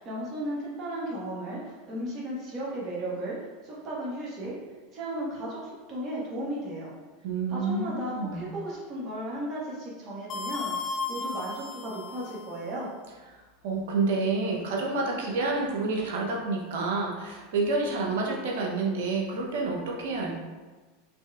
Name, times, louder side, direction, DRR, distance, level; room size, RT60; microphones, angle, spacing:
voice 1, 0.0-3.4 3.6-4.6 4.9-6.9 7.5-12.9, right 1 dB, 40° right, -5 dB, 1.4 m, -35 dB
voice 2, 7.2-8.5 13.6-20.4, right 3 dB, 70° right, -1 dB, 0.7 m, -29 dB
sound 1, 10.3-12.7, left 4 dB, 35° left, 0.5 m, -35 dB
4.2 x 3.1 x 2.3 m, 1.3 s
hypercardioid pair, 95°, 0 cm